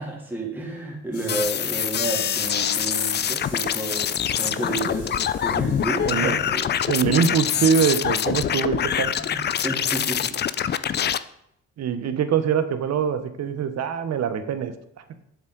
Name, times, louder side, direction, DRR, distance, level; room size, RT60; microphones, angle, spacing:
voice 1, 0.0-4.1 4.4-6.7 8.4-8.5 9.2-10.4, right 2 dB, 5° right, -3 dB, 2.9 m, -31 dB
sound 1, 1.1-6.7, left 3 dB, 75° left, 3.1 m, -43 dB
sound 2, 1.3-11.2, left 9 dB, 35° left, 0.4 m, -25 dB
voice 2, 6.0-6.4 6.9-9.1 11.8-14.7, right 7 dB, 60° right, 10 dB, 0.9 m, -23 dB
7.4 x 7.2 x 3.9 m, 0.76 s
cardioid pair, 90°, 30 cm